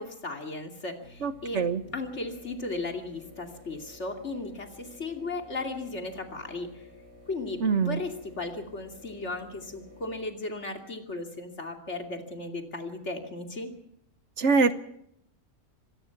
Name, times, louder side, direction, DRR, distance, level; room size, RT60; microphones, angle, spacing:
voice 1, 0.0-1.6 1.9-6.9 7.3-13.7, left 2 dB, 50° left, 5 dB, 2.9 m, -36 dB
sound 1, 1.0-10.2, left 1 dB, 80° left, 7.4 m, -52 dB
voice 2, 1.2-1.8 7.6-8.0 14.4-14.7, right 4 dB, 55° right, 13 dB, 1.2 m, -24 dB
24.5 x 18.5 x 5.9 m, 0.72 s
omnidirectional pair, 1.5 m